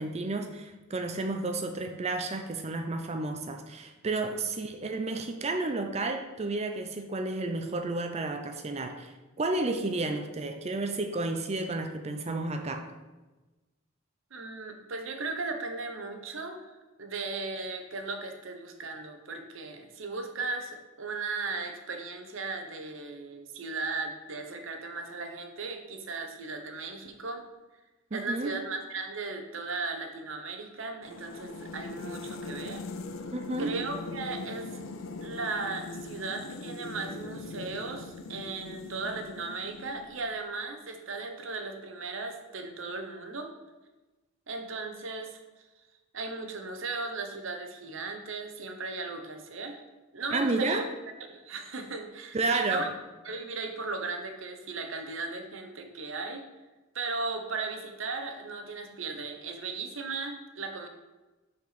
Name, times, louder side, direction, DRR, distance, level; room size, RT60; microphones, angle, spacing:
voice 1, 0.0-12.9 28.1-28.6 33.3-33.8 50.3-50.9 52.3-52.9, right 2 dB, 30° right, 6 dB, 0.5 m, -31 dB
voice 2, 14.3-27.4 28.1-32.8 33.6-34.8 35.2-43.5 44.5-45.4 46.1-49.8 50.1-50.8 51.3-52.9 53.2-56.4 56.9-60.9, right 3 dB, 65° right, 5 dB, 0.9 m, -36 dB
sound 1, 31.0-40.4, left 3 dB, 65° left, 0.6 m, -41 dB
5.8 x 4.5 x 5.8 m, 1.2 s
head